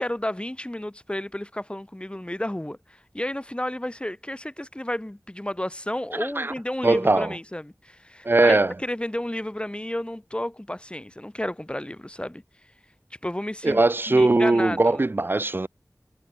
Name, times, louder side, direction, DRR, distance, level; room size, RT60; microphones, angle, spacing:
voice 1, 0.0-12.4 13.2-13.8 14.1-15.0, left 1 dB, 20° left, 1.3 m, -32 dB
voice 2, 6.8-7.4 8.2-8.7 13.6-15.7, right 2 dB, 35° right, 0.3 m, -20 dB
wide cardioid pair, 55°, 6 cm